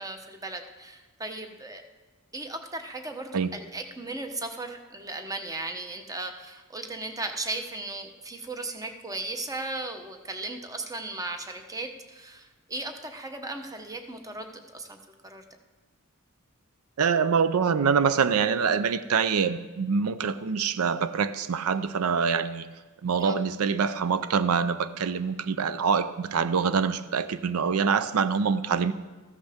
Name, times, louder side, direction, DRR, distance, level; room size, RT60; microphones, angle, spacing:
voice 1, 0.0-1.8 2.3-15.5 23.2-23.4, right 2 dB, 15° right, 6 dB, 0.8 m, -36 dB
voice 2, 17.0-22.7 23.0-28.9, right 6 dB, 85° right, 13 dB, 0.5 m, -25 dB
14.0 x 13.5 x 3.5 m, 1.3 s
head